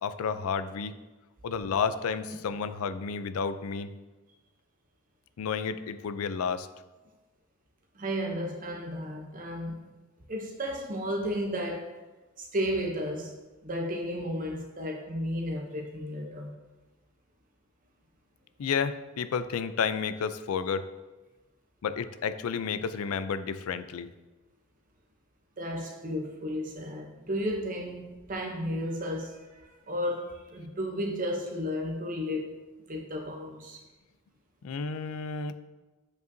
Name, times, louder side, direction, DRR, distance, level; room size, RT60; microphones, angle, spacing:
voice 1, 0.0-1.0 1.4-3.9 5.4-6.7 18.6-20.9 21.8-24.1 34.6-35.5, left 6 dB, 80° left, 13 dB, 0.4 m, -31 dB
voice 2, 7.9-9.9 10.3-11.9 12.4-13.4 13.6-16.5 25.6-32.6 32.9-33.8, equal, 40° right, 2 dB, 0.7 m, -33 dB
7.6 x 5.3 x 2.6 m, 1.2 s
head